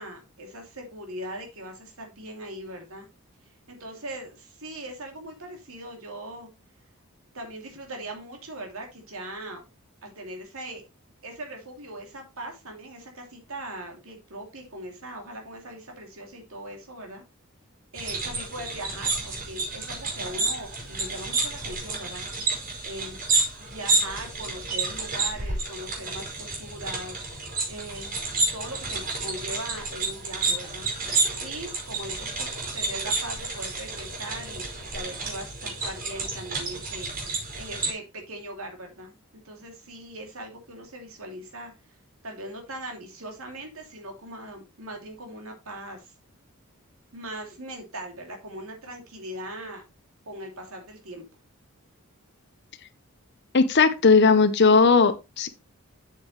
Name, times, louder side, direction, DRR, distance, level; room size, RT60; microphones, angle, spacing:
voice 1, 0.0-3.1 3.4-6.5 7.3-9.6 10.0-10.8 11.2-17.2 17.9-22.3 22.8-23.2 23.6-28.1 28.5-30.9 31.4-32.5 32.7-41.7 42.2-46.1 47.1-49.8 50.3-51.2, right 1 dB, 70° right, 2.8 m, -40 dB
sound 1, 17.9-37.9, right 3 dB, 40° right, 5.1 m, -30 dB
voice 2, 53.5-55.5, left 4 dB, 50° left, 0.8 m, -18 dB
8.3 x 7.5 x 3.2 m
head